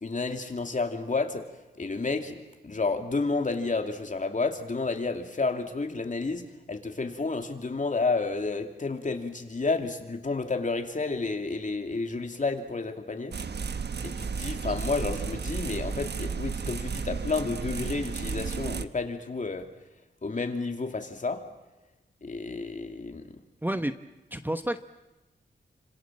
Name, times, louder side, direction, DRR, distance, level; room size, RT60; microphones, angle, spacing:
voice 1, 0.0-1.5 1.8-13.4 14.0-19.7 20.2-21.4 22.2-23.4, left 3 dB, 45° left, 5 dB, 2.8 m, -31 dB
sound 1, 13.3-18.8, right 5 dB, 65° right, 1.2 m, -33 dB
voice 2, 23.6-23.9 24.3-24.8, right 1 dB, 10° right, 9 dB, 1.0 m, -29 dB
29.5 x 26.0 x 7.5 m, 1.0 s
wide cardioid pair, 105°, 19 cm